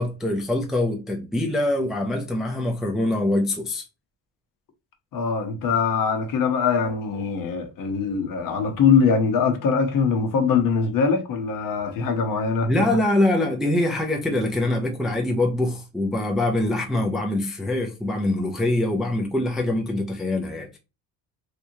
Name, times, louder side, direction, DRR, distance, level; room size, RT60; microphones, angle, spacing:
voice 1, 0.0-3.8 12.7-20.8, left 1 dB, ahead, 0.4 m, -24 dB
voice 2, 5.1-12.7, left 5 dB, 50° left, 0.9 m, -22 dB
3.4 x 2.9 x 2.6 m
cardioid pair, 155°, 41 cm